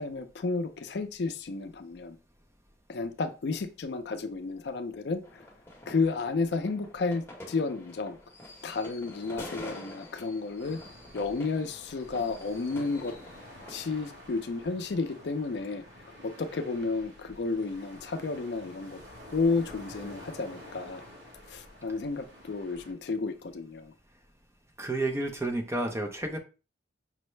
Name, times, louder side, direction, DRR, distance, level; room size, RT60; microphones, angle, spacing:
voice 1, 0.0-2.2 2.9-5.4 5.9-8.2 8.6-10.8 11.1-13.2 13.7-15.8 16.2-19.0 19.3-21.0 21.5-23.9, left 4 dB, 60° left, 0.4 m, -32 dB
sound 1, 5.2-13.8, left 1 dB, 15° left, 0.9 m, -47 dB
sound 2, 10.6-22.9, equal, 60° right, 1.3 m, -49 dB
voice 2, 24.8-26.4, right 2 dB, 15° right, 0.4 m, -30 dB
5.3 x 2.0 x 3.1 m
head